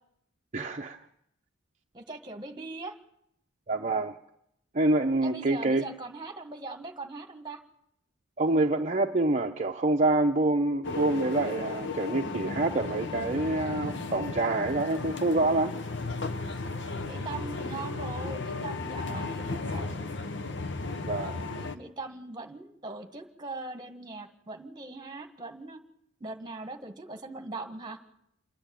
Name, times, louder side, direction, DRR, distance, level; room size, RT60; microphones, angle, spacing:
voice 1, 0.5-1.0 3.7-4.1 4.7-5.8 8.4-15.7 19.1-19.2 21.1-21.4, right 2 dB, 40° right, 0.7 m, -26 dB
voice 2, 1.9-2.9 5.2-7.6 17.0-20.1 21.6-25.8 26.2-28.0, right 3 dB, 20° right, 1.7 m, -40 dB
sound 1, 10.8-21.8, left 3 dB, 65° left, 1.0 m, -35 dB
28.0 x 10.5 x 8.9 m
head